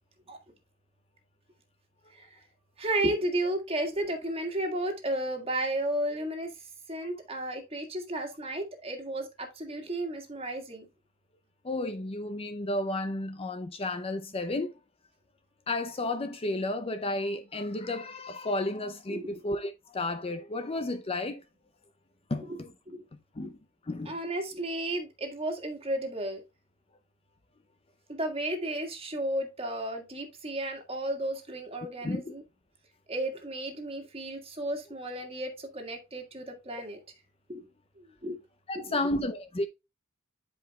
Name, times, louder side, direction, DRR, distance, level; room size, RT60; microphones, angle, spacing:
voice 1, 2.8-6.5 6.9-10.9 19.1-19.4 22.5-22.6 22.9-23.0 23.4-23.5 24.1-26.4 28.1-32.4 33.1-37.0 37.5-37.6 38.2-38.4 38.8-39.0, right 1 dB, 25° right, 1.7 m, -33 dB
voice 2, 11.6-14.7 15.7-21.4 22.3-22.7 23.4-23.6 23.9-24.1 32.0-32.2 38.7-39.7, left 2 dB, 25° left, 0.5 m, -32 dB
11.0 x 5.0 x 2.3 m
head